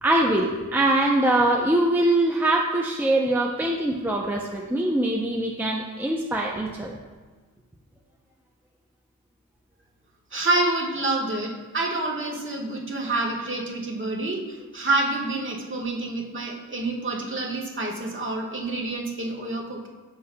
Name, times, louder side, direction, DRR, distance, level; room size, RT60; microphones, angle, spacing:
voice 1, 0.0-7.0, right 1 dB, 5° right, -1 dB, 0.6 m, -23 dB
voice 2, 10.3-19.9, right 2 dB, 35° right, -1 dB, 1.4 m, -27 dB
14.0 x 5.7 x 2.3 m, 1.3 s
wide cardioid pair, 105°, 33 cm